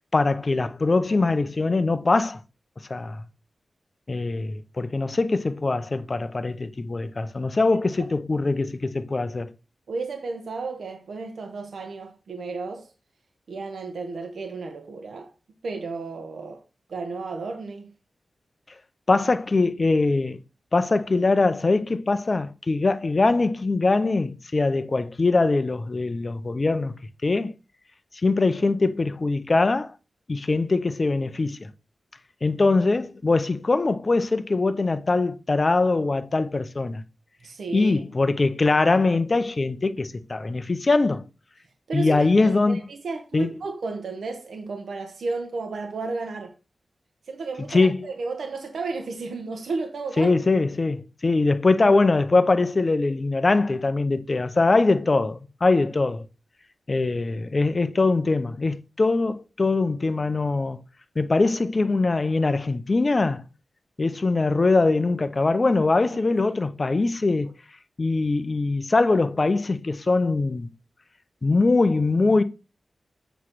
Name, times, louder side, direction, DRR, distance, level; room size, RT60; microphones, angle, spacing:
voice 1, 0.1-2.4 2.9-3.2 4.1-9.5 19.1-20.4 20.7-26.9 27.2-27.5 28.2-29.9 30.3-31.7 32.4-37.0 37.7-41.3 41.9-42.8 43.3-43.5 47.7-48.0 50.2-56.2 56.9-60.8 61.2-63.4 64.0-67.5 68.0-70.7 71.4-72.4, left 3 dB, 35° left, 0.6 m, -22 dB
voice 2, 9.9-12.9 13.5-15.3 15.6-16.6 16.9-17.9 19.1-19.2 37.4-38.0 41.9-46.5 47.2-50.4 66.1-66.2 66.5-66.6, right 3 dB, 85° right, 1.1 m, -33 dB
8.1 x 3.1 x 6.1 m
wide cardioid pair, 145°, 0 cm